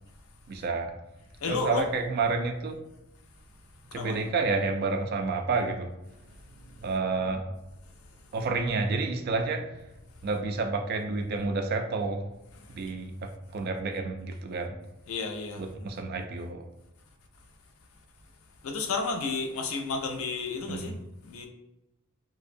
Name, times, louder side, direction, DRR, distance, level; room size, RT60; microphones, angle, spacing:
voice 1, 0.5-0.9 1.5-2.8 3.9-5.9 6.8-7.5 8.3-9.8 10.2-12.3 12.7-14.8 15.6-16.6 20.7-21.0, right 3 dB, 50° right, 4 dB, 0.3 m, -30 dB
voice 2, 1.4-1.8 3.9-4.2 6.5-6.8 7.2-7.4 8.0-8.1 12.6-12.8 15.1-15.6 18.6-20.9 21.2-21.5, left 4 dB, 85° left, 4 dB, 0.4 m, -32 dB
2.6 x 2.1 x 2.5 m, 0.92 s
head